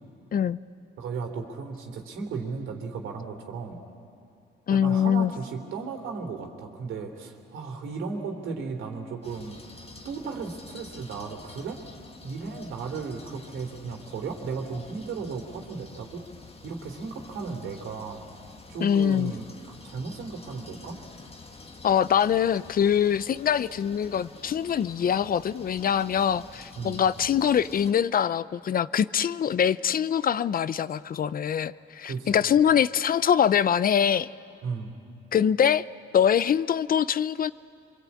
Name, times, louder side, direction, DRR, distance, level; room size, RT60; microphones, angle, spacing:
voice 1, 1.0-3.8 4.7-9.6 10.0-11.8 12.2-16.2 16.6-18.2 18.7-21.0 26.7-27.0 32.0-32.5 34.6-34.9, right 4 dB, 80° right, 4 dB, 3.1 m, -35 dB
voice 2, 4.7-5.3 18.8-19.3 21.8-34.3 35.3-35.8 36.1-37.5, left 8 dB, 45° left, 17 dB, 0.6 m, -23 dB
sound 1, 9.2-27.9, left 3 dB, 30° left, 1.7 m, -48 dB
24.5 x 24.0 x 8.5 m, 2.5 s
cardioid pair, 90°, 20 cm